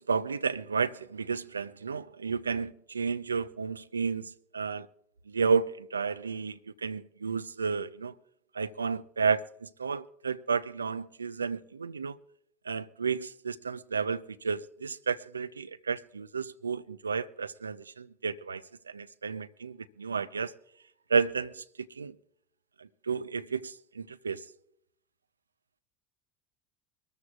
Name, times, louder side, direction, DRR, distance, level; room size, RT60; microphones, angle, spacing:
voice 1, 0.1-4.9 5.3-8.1 8.6-12.1 12.7-20.5 21.1-21.6 22.0-22.1 23.1-24.4, right 5 dB, 80° right, 0.4 m, -32 dB
23.5 x 13.5 x 2.4 m
figure-of-eight pair, 70°, 0 cm